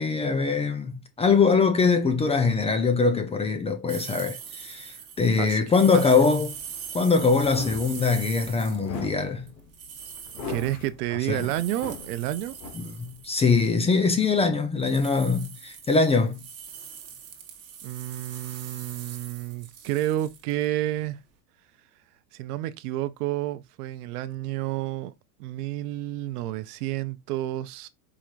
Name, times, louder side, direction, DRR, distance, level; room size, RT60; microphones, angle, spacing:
voice 1, 0.0-6.6 6.9-9.5 11.3-11.5 12.7-16.4, left 4 dB, 15° left, 0.4 m, -23 dB
sound 1, 3.9-8.9 9.5-13.5 14.8-20.7, right 7 dB, 35° right, 1.0 m, -42 dB
sound 2, 6.6-13.2, left 4 dB, 85° left, 1.3 m, -40 dB
voice 2, 10.5-12.6 17.8-21.2 22.3-25.1 25.4-27.9, right 14 dB, 80° right, 0.6 m, -30 dB
4.8 x 3.0 x 2.4 m
supercardioid pair, 105°, 46 cm